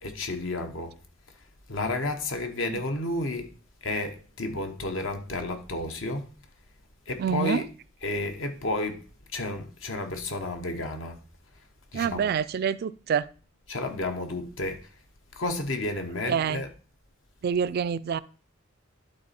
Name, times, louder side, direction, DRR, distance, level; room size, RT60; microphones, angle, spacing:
voice 1, 0.0-1.0 1.7-3.5 3.8-6.3 7.1-7.6 8.0-9.1 9.3-11.2 11.9-12.3 13.7-14.9 15.3-16.7, left 2 dB, 70° left, 1.1 m, -31 dB
voice 2, 7.2-7.7 11.9-13.3 16.3-16.6 17.4-18.2, right 7 dB, 50° right, 0.3 m, -27 dB
11.5 x 4.0 x 4.2 m
head